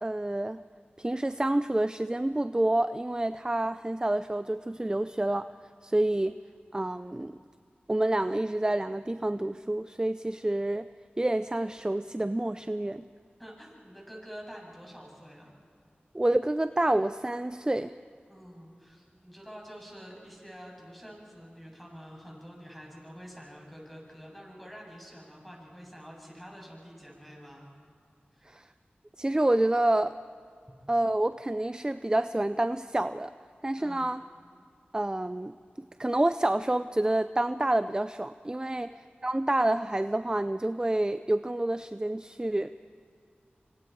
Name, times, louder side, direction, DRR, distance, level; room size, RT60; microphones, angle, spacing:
voice 1, 0.0-0.6 1.0-5.5 5.8-6.4 6.7-7.4 7.9-10.9 11.2-13.0 16.1-17.9 28.4-28.7 29.2-30.1 30.9-33.3 33.6-34.2 34.9-39.0 39.2-42.7, right 1 dB, 20° right, 12 dB, 0.5 m, -28 dB
voice 2, 13.4-15.5 18.3-27.7 28.3-28.6 33.8-34.1 38.8-38.9, equal, ahead, -2 dB, 7.7 m, -47 dB
26.5 x 25.0 x 4.7 m, 2.2 s
wide cardioid pair, 45°, 4 cm